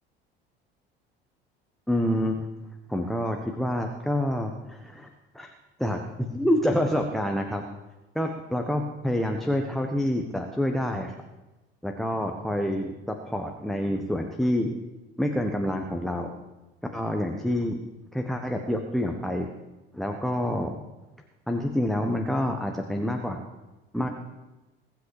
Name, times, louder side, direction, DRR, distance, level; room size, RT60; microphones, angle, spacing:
voice 1, 1.9-2.4 2.9-5.1 5.3-5.5 5.8-7.6 8.1-11.1 11.8-14.7 15.2-16.3 16.9-17.8 18.1-19.5 19.9-20.7 21.5-23.4 23.9-24.1, left 1 dB, ahead, 3 dB, 1.3 m, -27 dB
21.0 x 8.4 x 4.9 m, 1.1 s
figure-of-eight pair, 65°, 30 cm